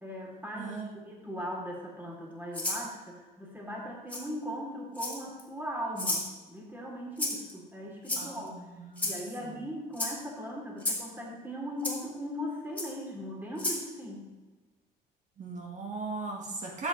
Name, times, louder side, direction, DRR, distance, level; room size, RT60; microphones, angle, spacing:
voice 1, 0.0-8.6 9.0-14.3, equal, 10° right, -3 dB, 2.7 m, -39 dB
voice 2, 0.6-0.9 8.2-9.1 9.4-9.5 15.4-16.9, right 3 dB, 45° right, 0 dB, 1.4 m, -38 dB
Rattle (instrument), 2.5-2.8 4.1-4.2 4.9-5.4 6.0-6.3 7.2-7.5 8.0-8.5 9.0-9.2 9.9-10.1 10.8-11.0 11.8-11.9 12.8-12.9 13.5-13.8, left 2 dB, 10° left, 2.7 m, -32 dB
13.0 x 7.1 x 3.0 m, 1.3 s
cardioid pair, 110°, 17 cm